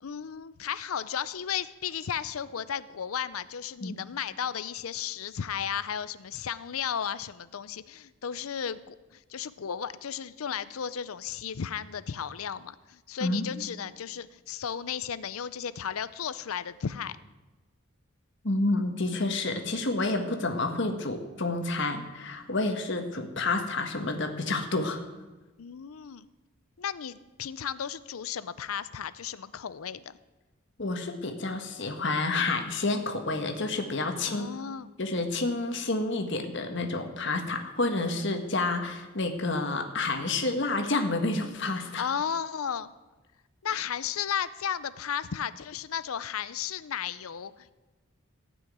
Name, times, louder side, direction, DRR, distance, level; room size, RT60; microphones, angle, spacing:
voice 1, 0.0-17.2 20.2-20.4 25.6-26.3 26.8-30.1 34.3-34.9 41.8-42.9 43.6-47.7, left 8 dB, 90° left, 16 dB, 0.6 m, -34 dB
voice 2, 13.2-13.6 18.4-25.0 30.8-34.5 35.0-42.0 43.7-43.8, left 2 dB, 60° left, 5 dB, 1.5 m, -29 dB
15.0 x 6.3 x 9.3 m, 1.2 s
head